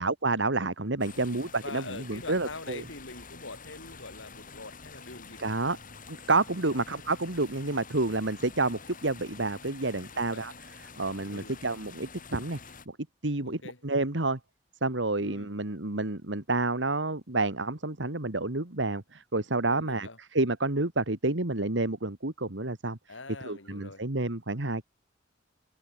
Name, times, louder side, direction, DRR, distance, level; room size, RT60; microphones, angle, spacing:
voice 1, 0.0-2.8 5.4-5.8 6.1-10.5 11.0-12.6 12.9-13.0 13.2-14.4 14.8-23.0 23.4-24.8, right 2 dB, 70° right, 2.2 m, -29 dB
sound 1, 1.0-12.9, left 5 dB, 45° left, 5.3 m, -48 dB
voice 2, 1.1-5.5 6.6-6.8 10.1-10.5 11.3-11.6 13.4-13.8 15.2-15.5 19.7-20.2 23.1-24.1, left 3 dB, 80° left, 5.8 m, -44 dB
head